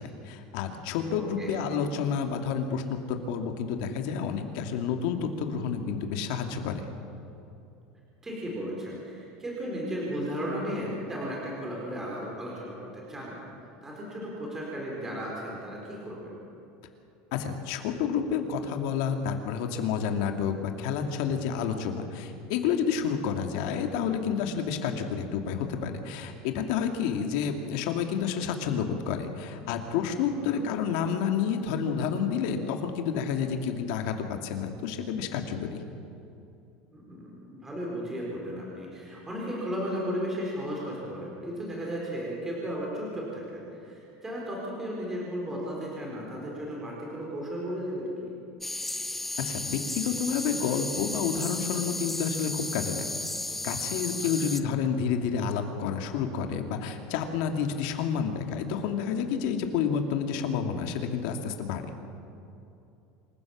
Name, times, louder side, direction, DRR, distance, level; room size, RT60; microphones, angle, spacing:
voice 1, 0.0-6.9 17.3-35.8 49.4-53.1 53.6-61.9, left 7 dB, 65° left, 5 dB, 2.4 m, -29 dB
voice 2, 1.2-1.6 8.2-13.4 13.8-16.4 30.4-30.7 36.9-48.3 54.4-54.5, equal, 10° right, -3 dB, 4.7 m, -35 dB
sound 1, 48.6-54.6, left 2 dB, 5° left, 0.7 m, -34 dB
26.5 x 15.5 x 7.3 m, 2.8 s
cardioid pair, 165°, 4 cm